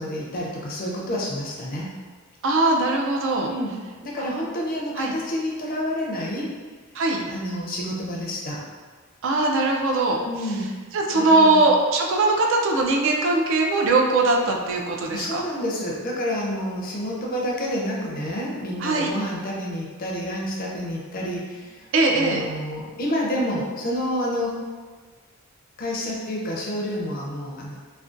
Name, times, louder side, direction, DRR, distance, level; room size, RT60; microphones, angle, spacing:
voice 1, 0.0-1.9 3.4-3.8 4.0-6.5 7.3-8.6 10.2-10.7 11.1-11.6 15.1-21.9 22.1-24.6 25.8-27.8, equal, 40° left, -3 dB, 0.4 m, -29 dB
voice 2, 2.4-3.5 4.2-4.5 5.0-5.1 6.9-7.2 9.2-10.2 10.9-15.4 18.8-19.1 21.9-22.5, right 2 dB, 60° right, 1 dB, 0.3 m, -21 dB
2.4 x 2.2 x 2.5 m, 1.5 s
head